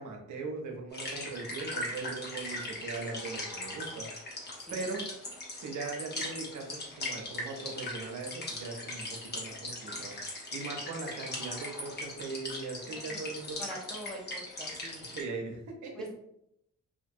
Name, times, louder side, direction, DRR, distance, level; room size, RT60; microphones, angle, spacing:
voice 1, 0.0-4.1 4.7-5.1 5.6-13.6 15.1-16.1, right 4 dB, 75° right, 1 dB, 0.7 m, -40 dB
Sound of water stream, 0.9-15.2, left 1 dB, 35° left, 0.9 m, -39 dB
voice 2, 12.9-13.2 13.6-15.1 16.0-16.1, equal, ahead, -2 dB, 0.6 m, -44 dB
2.5 x 2.2 x 2.6 m, 0.76 s
cardioid pair, 90°, 30 cm